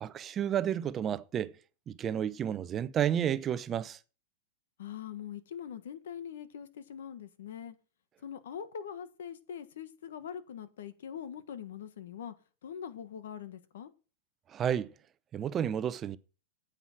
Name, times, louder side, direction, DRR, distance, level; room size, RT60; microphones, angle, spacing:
voice 1, 0.0-1.5 1.9-4.0 14.5-14.9 15.3-16.2, right 9 dB, 25° right, 0.7 m, -31 dB
voice 2, 4.8-7.7 8.2-12.3 12.6-13.9, left 8 dB, 80° left, 1.4 m, -43 dB
9.4 x 8.1 x 6.1 m
supercardioid pair, 145°, 0 cm